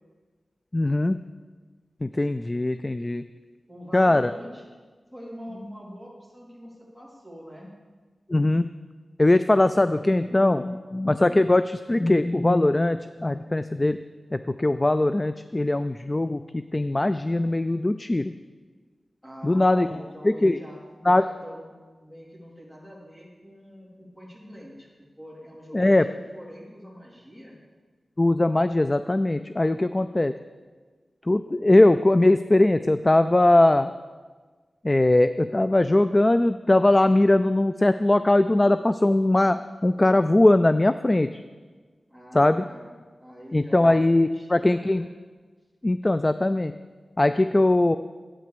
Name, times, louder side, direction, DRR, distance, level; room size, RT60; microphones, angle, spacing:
voice 1, 0.7-1.2 2.0-3.2 3.9-4.3 8.3-8.7 9.2-14.0 14.3-18.3 19.4-19.9 20.2-20.6 21.1-21.3 25.7-26.1 28.2-30.3 31.3-33.9 34.8-41.4 42.3-42.6 43.5-45.0 45.8-46.7 47.2-48.0, left 2 dB, 25° left, 11 dB, 0.3 m, -20 dB
voice 2, 3.7-4.7 5.1-7.7 19.2-20.8 21.1-21.7 22.0-27.6 42.1-45.1, equal, 5° left, -4 dB, 3.7 m, -44 dB
12.5 x 8.9 x 6.8 m, 1.4 s
wide cardioid pair, 100°, 0 cm